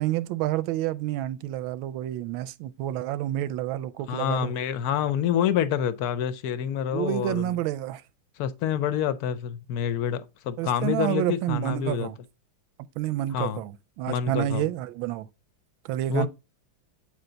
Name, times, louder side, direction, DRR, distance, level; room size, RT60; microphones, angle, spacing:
voice 1, 0.0-4.5 6.9-8.0 10.6-12.2 13.0-15.3 15.8-16.3, right 13 dB, 90° right, 1.4 m, -29 dB
voice 2, 4.1-7.6 8.4-12.1 13.3-13.6 14.1-14.7 16.1-16.3, left 9 dB, 70° left, 0.9 m, -27 dB
8.7 x 3.4 x 3.9 m
omnidirectional pair, 2.1 m